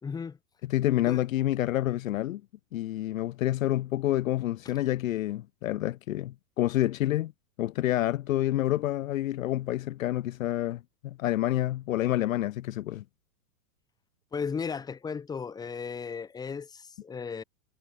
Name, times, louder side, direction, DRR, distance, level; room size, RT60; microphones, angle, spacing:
voice 1, 0.0-0.4 1.1-1.2 4.6-4.7 14.3-17.4, left 6 dB, 10° left, 2.6 m, -35 dB
voice 2, 0.7-2.4 2.7-7.3 7.6-13.0, left 14 dB, 55° left, 1.6 m, -28 dB
supercardioid pair, 170°, 47 cm